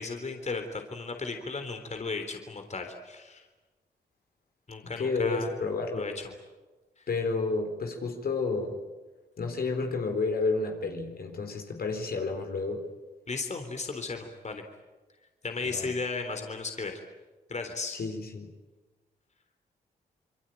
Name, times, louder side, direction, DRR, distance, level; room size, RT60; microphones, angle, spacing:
voice 1, 0.0-3.5 4.7-5.5 5.9-6.3 13.3-14.6 15.4-16.9 17.5-18.0, left 4 dB, 45° left, 5 dB, 3.7 m, -35 dB
voice 2, 5.0-6.1 7.1-8.8 9.4-12.9 15.6-15.9 17.9-18.5, left 3 dB, 65° left, 4 dB, 4.3 m, -31 dB
27.5 x 23.0 x 9.1 m, 1.2 s
cardioid pair, 60°, 17 cm